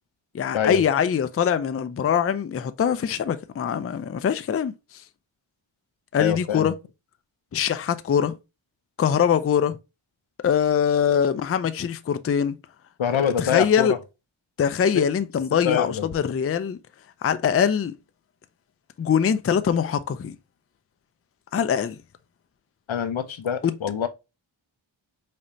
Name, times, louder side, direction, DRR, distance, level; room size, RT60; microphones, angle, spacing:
voice 1, 0.3-5.0 6.1-6.7 7.5-8.4 9.0-9.8 10.4-12.6 13.2-13.9 14.6-16.8 17.2-17.9 19.0-20.4 21.5-22.0 23.6-23.8, left 8 dB, 30° left, 0.4 m, -23 dB
voice 2, 6.2-6.7 13.0-14.0 15.6-16.1 22.9-24.1, left 8 dB, 75° left, 0.7 m, -25 dB
5.1 x 2.8 x 2.6 m
cardioid pair, 50°, 48 cm